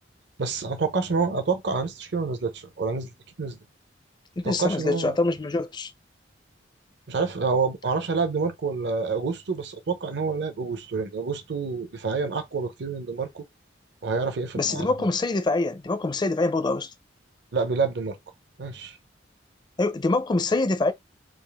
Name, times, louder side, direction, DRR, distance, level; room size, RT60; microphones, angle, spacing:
voice 1, 0.4-3.1 3.4-3.6 4.4-5.2 7.1-13.4 14.0-15.1 17.5-18.2 18.6-19.0, right 4 dB, 60° right, 0.7 m, -28 dB
voice 2, 4.4-5.9 14.6-16.9 19.8-20.9, left 2 dB, 25° left, 0.4 m, -25 dB
3.5 x 2.4 x 3.4 m
head